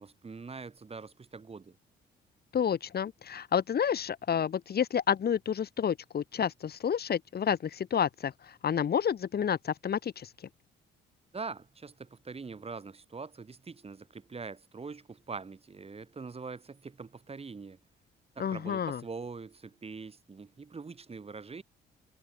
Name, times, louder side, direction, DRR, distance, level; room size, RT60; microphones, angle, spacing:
voice 1, 0.0-1.8 11.3-17.8 18.4-21.6, right 4 dB, 30° right, 2.8 m, -43 dB
voice 2, 2.5-10.3 18.4-19.0, left 8 dB, 50° left, 2.6 m, -30 dB
cardioid pair, 90°, 20 cm